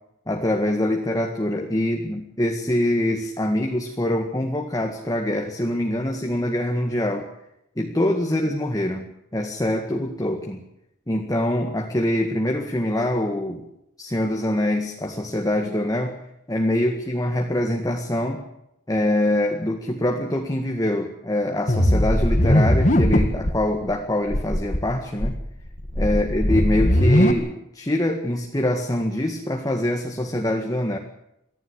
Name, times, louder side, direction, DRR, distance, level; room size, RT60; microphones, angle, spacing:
voice 1, 0.3-7.3 7.8-10.6 11.1-13.6 14.0-16.2 16.5-18.4 18.9-25.4 26.0-31.0, left 1 dB, 15° left, 3 dB, 1.9 m, -24 dB
sound 1, 21.7-23.6 23.9-24.0 24.3-24.8 25.2-27.3, equal, 35° left, 2.1 m, -19 dB
24.0 x 15.5 x 8.1 m, 0.81 s
head